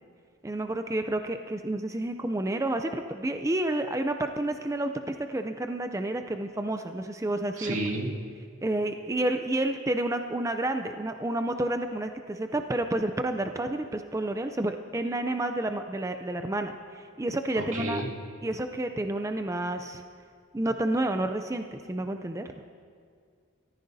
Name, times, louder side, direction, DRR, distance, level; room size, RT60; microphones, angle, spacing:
voice 1, 0.4-7.8 8.6-18.0 18.4-20.0 20.5-22.6, right 1 dB, 15° right, 6 dB, 0.4 m, -30 dB
voice 2, 7.5-8.1 17.5-18.1, right 1 dB, 85° right, -3 dB, 2.4 m, -31 dB
25.0 x 14.0 x 2.7 m, 2.1 s
head